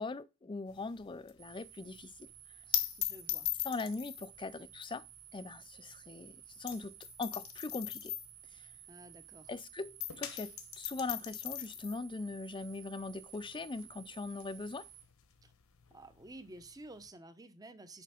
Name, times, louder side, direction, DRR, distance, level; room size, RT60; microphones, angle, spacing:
voice 1, 0.0-2.3 2.7-2.8 3.6-5.0 5.3-8.2 8.5-8.7 9.5-14.9, left 3 dB, 20° left, 0.4 m, -41 dB
sound 1, 0.7-9.6 9.9-17.1, left 13 dB, 70° left, 1.0 m, -41 dB
sound 2, 1.4-15.0, right 11 dB, 50° right, 0.9 m, -55 dB
voice 2, 3.0-3.5 8.9-9.5 15.4-15.5 15.9-18.0, right 2 dB, 15° right, 0.8 m, -52 dB
6.7 x 5.1 x 5.0 m
head